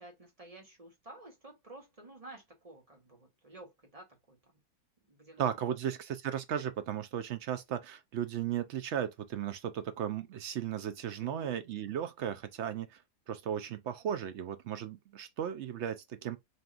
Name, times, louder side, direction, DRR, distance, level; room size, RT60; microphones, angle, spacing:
voice 1, 0.0-4.5 5.0-5.8 11.2-11.6, right 2 dB, 25° right, 1.1 m, -52 dB
voice 2, 5.4-13.0 13.3-16.4, right 9 dB, 70° right, 0.7 m, -35 dB
5.3 x 3.0 x 2.4 m
omnidirectional pair, 1.7 m